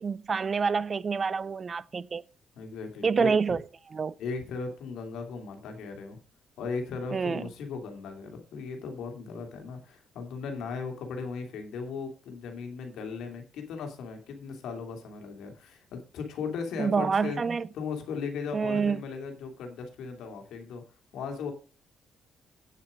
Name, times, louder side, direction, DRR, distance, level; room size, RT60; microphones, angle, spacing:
voice 1, 0.0-2.2 3.0-4.1 7.1-7.4 16.8-17.7 18.5-19.0, right 5 dB, 40° right, 0.5 m, -27 dB
voice 2, 2.6-3.3 4.2-6.2 6.6-17.4 17.7-20.8 21.1-21.5, left 5 dB, 80° left, 2.7 m, -37 dB
9.2 x 7.6 x 5.0 m
cardioid pair, 90°, 0 cm